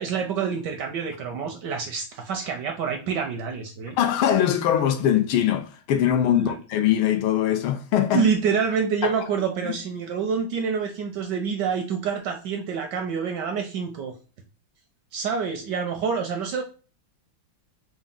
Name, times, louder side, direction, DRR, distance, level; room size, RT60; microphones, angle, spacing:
voice 1, 0.0-4.0 6.3-6.6 8.1-14.1 15.1-16.6, right 6 dB, 75° right, 1.0 m, -27 dB
voice 2, 4.0-8.2 9.0-9.1 9.6-9.7, left 10 dB, 80° left, 1.5 m, -22 dB
4.8 x 2.1 x 3.6 m
omnidirectional pair, 2.3 m